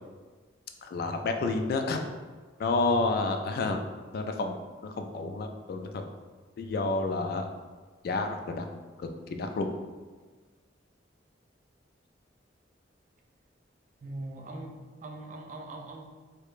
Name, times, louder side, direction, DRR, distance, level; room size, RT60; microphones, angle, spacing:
voice 1, 0.8-2.1 2.6-3.8 4.1-6.0 6.6-7.5 8.0-8.7 9.0-9.7, left 3 dB, 55° left, 5 dB, 0.3 m, -30 dB
voice 2, 14.0-16.1, right 2 dB, 45° right, 2 dB, 0.4 m, -41 dB
4.6 x 2.1 x 2.4 m, 1.4 s
head